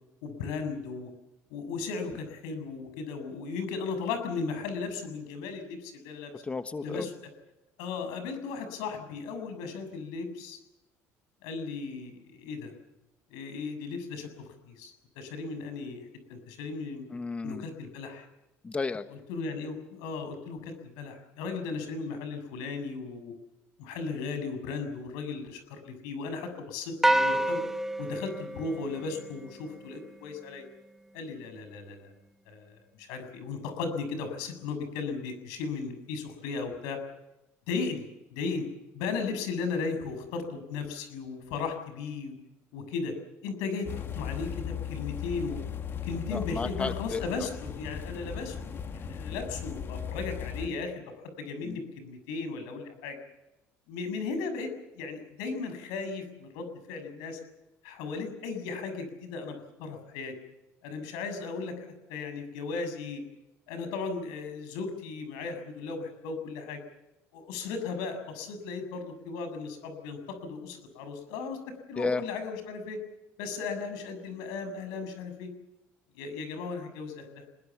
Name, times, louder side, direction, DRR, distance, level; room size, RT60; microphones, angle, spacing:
voice 1, 0.2-1.1 1.5-6.4 6.8-7.1 7.8-10.6 11.4-12.7 13.3-14.3 14.7-17.1 17.4-18.3 19.3-23.3 23.8-27.6 28.0-30.6 31.1-32.1 32.5-37.0 37.7-38.7 38.9-42.3 42.7-43.1 43.4-45.6 46.0-50.9 51.4-53.2 53.9-57.4 57.8-60.3 60.8-63.2 63.7-66.8 67.3-71.6 71.9-73.0 73.4-75.5 76.1-77.5, left 4 dB, 90° left, 8 dB, 7.0 m, -36 dB
voice 2, 6.4-7.1 17.1-17.7 18.6-19.0 46.3-47.2 51.6-51.8 72.0-72.2, left 4 dB, 20° left, 10 dB, 1.4 m, -33 dB
sound 1, 27.0-29.6, right 1 dB, 5° right, 1.3 m, -28 dB
sound 2, 43.8-50.7, left 8 dB, 40° left, 2.5 m, -37 dB
26.5 x 21.0 x 7.3 m, 0.96 s
cardioid pair, 110°, 6 cm